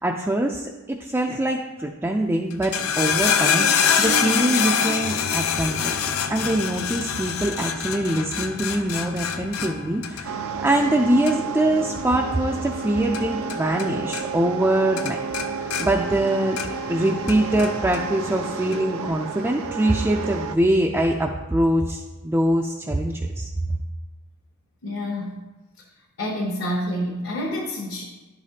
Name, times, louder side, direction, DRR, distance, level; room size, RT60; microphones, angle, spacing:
voice 1, 0.0-5.9 6.3-10.3 10.6-15.2 15.5-16.6 16.9-23.5, right 1 dB, 10° right, 0 dB, 0.3 m, -23 dB
sound 1, 2.5-13.9 14.1-14.7 15.0-16.9 17.3-18.0 18.7-18.8, left 7 dB, 85° left, 0.5 m, -25 dB
sound 2, 10.2-20.6, right 5 dB, 75° right, 0.5 m, -31 dB
voice 2, 24.8-25.3 26.2-28.0, equal, 60° left, -3 dB, 1.0 m, -28 dB
10.5 x 5.0 x 2.8 m, 1.2 s
head